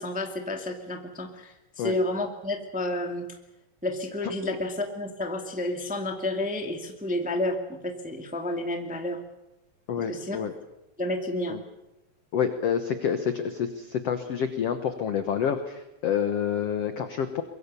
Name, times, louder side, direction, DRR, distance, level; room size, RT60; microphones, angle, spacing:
voice 1, 0.0-3.2 3.8-9.2 10.0-10.4 11.0-11.6, left 1 dB, 5° right, 4 dB, 1.0 m, -30 dB
voice 2, 9.9-10.5 11.5-11.6 12.3-17.4, left 8 dB, 80° left, 8 dB, 1.3 m, -28 dB
23.5 x 23.0 x 6.9 m, 0.97 s
omnidirectional pair, 4.6 m